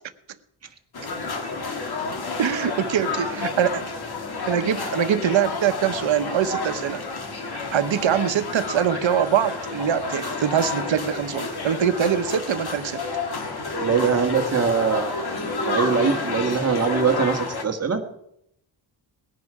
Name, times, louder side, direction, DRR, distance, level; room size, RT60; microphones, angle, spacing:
sound 1, 0.9-17.6, left 3 dB, 55° left, 1.8 m, -30 dB
voice 1, 2.4-3.8 4.5-7.0 7.7-13.0, right 9 dB, 80° right, 11 dB, 1.0 m, -23 dB
voice 2, 13.8-15.1 15.7-18.0, right 5 dB, 35° right, 4 dB, 1.5 m, -22 dB
19.0 x 10.5 x 4.8 m, 0.79 s
wide cardioid pair, 125°, 45 cm